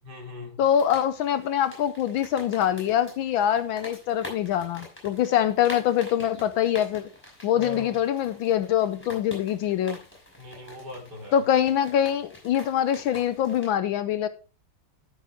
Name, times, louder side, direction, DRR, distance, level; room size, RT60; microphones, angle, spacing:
voice 1, 0.0-0.6 7.5-8.1 10.4-11.5, left 2 dB, 50° right, 0 dB, 3.8 m, -40 dB
voice 2, 0.6-7.0 7.4-10.0 11.3-14.3, left 10 dB, 75° left, 12 dB, 1.3 m, -24 dB
sound 1, 0.6-13.7, left 2 dB, 5° left, 5.5 m, -45 dB
13.0 x 6.5 x 3.4 m, 0.34 s
omnidirectional pair, 2.4 m